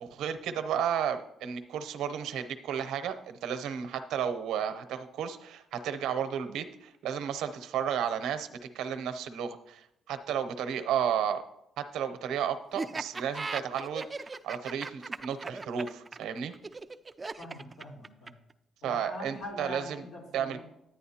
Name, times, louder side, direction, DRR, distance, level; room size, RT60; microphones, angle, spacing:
voice 1, 0.0-8.5 8.7-11.4 11.9-16.5 18.8-20.0 20.3-20.6, right 8 dB, 85° right, 8 dB, 0.7 m, -33 dB
Laughter, 12.8-18.5, right 3 dB, 25° right, 0.4 m, -38 dB
voice 2, 17.4-18.4 18.8-20.6, left 1 dB, 90° left, -2 dB, 3.6 m, -43 dB
10.0 x 9.6 x 2.8 m, 0.80 s
cardioid pair, 105°, 0 cm